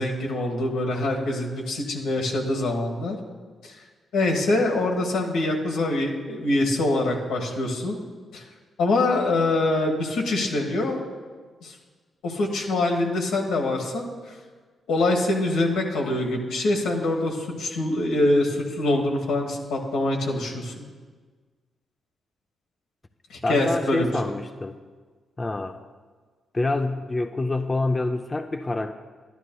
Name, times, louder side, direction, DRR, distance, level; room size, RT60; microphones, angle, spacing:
voice 1, 0.0-3.2 3.6-3.7 4.1-8.0 8.3-8.4 8.8-11.0 11.6-11.7 12.2-14.3 14.9-20.8 23.3-24.1, left 2 dB, 90° left, 0 dB, 1.4 m, -24 dB
voice 2, 23.4-24.8 25.4-25.8 26.5-28.9, left 2 dB, 25° left, 7 dB, 0.4 m, -26 dB
12.0 x 11.0 x 2.3 m, 1.5 s
cardioid pair, 70°, 0 cm